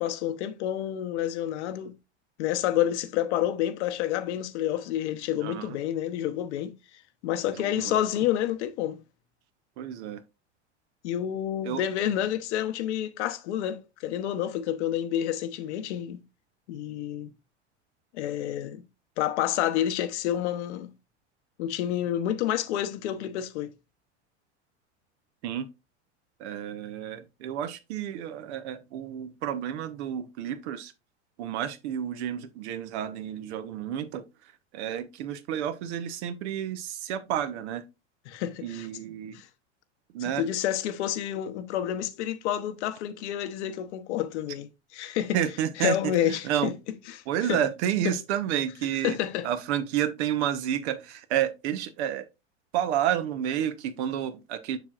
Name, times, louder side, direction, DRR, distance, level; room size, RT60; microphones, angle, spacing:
voice 1, 0.0-1.9 2.4-6.7 7.2-9.0 11.0-16.2 16.7-17.3 18.1-18.8 19.2-20.9 21.6-23.7 38.3-38.9 39.3-39.5 40.4-44.7 44.9-45.4 45.8-46.7 47.5-47.6 48.0-48.2 49.0-49.5, left 11 dB, 70° left, 1.0 m, -29 dB
voice 2, 5.4-5.8 7.5-8.0 9.8-10.2 11.6-11.8 25.4-25.7 26.4-30.9 31.4-37.8 38.6-39.4 40.1-40.5 45.3-46.7 47.3-49.2 49.4-52.3 52.7-54.8, right 10 dB, 70° right, 1.1 m, -30 dB
7.1 x 6.0 x 2.5 m
hypercardioid pair, 95°, 35 cm